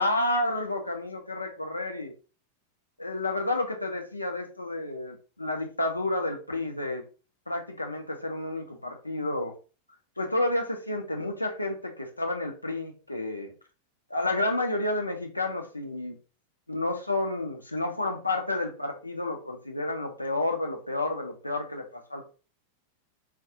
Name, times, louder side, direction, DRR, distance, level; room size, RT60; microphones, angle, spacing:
voice 1, 0.0-2.1 3.0-7.0 7.5-9.5 10.2-13.5 14.1-16.2 16.7-22.3, left 2 dB, 85° left, 4 dB, 0.6 m, -30 dB
3.5 x 2.3 x 2.8 m, 0.36 s
figure-of-eight pair, 90°, 0 cm